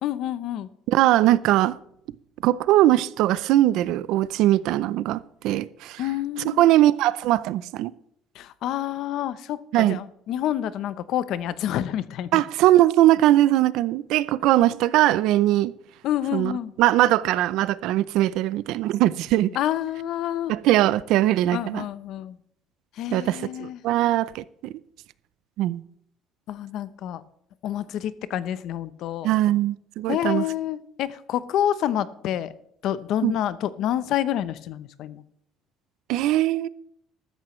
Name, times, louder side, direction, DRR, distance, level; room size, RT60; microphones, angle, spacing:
voice 1, 0.0-0.7 6.0-6.7 8.3-12.4 16.0-16.7 19.5-20.5 21.5-22.4 23.0-23.8 26.5-27.2 27.6-29.3 30.1-32.5 32.8-35.2, left 11 dB, 55° left, 0.8 m, -28 dB
voice 2, 0.9-1.8 2.4-6.0 6.4-7.9 9.7-10.0 12.3-15.7 16.3-19.5 20.5-21.9 23.1-24.7 25.6-25.8 29.2-30.4 33.2-33.3 36.1-36.7, right 14 dB, 65° right, 0.5 m, -21 dB
14.0 x 13.5 x 3.2 m
cardioid pair, 170°, 0 cm